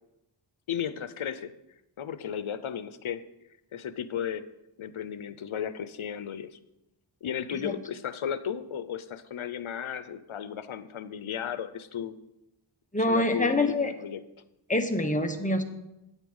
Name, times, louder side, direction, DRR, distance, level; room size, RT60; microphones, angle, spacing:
voice 1, 0.7-1.5 2.0-3.2 3.7-4.4 4.8-6.6 7.2-12.1 13.0-14.2, left 8 dB, 90° left, 13 dB, 0.7 m, -34 dB
voice 2, 12.9-13.9 14.7-15.6, left 1 dB, 15° left, 5 dB, 1.2 m, -25 dB
9.4 x 8.2 x 5.4 m, 0.90 s
wide cardioid pair, 60°, 47 cm